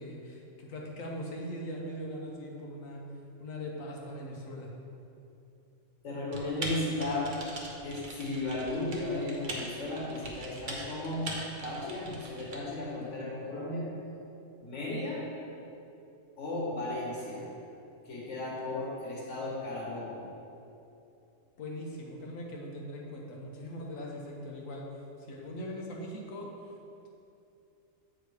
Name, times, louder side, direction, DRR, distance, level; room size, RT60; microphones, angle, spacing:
voice 1, 0.0-3.0 3.4-4.7 21.6-24.8 25.3-26.5, equal, 80° left, -1 dB, 1.3 m, -40 dB
voice 2, 6.0-7.3 7.8-11.2 11.6-13.9 14.6-15.2 16.4-17.4 18.1-20.2, left 2 dB, 65° left, -5 dB, 1.9 m, -35 dB
Typing, 6.3-12.6, right 1 dB, 65° right, 1.3 m, -41 dB
8.1 x 3.7 x 4.8 m, 2.7 s
omnidirectional pair, 1.4 m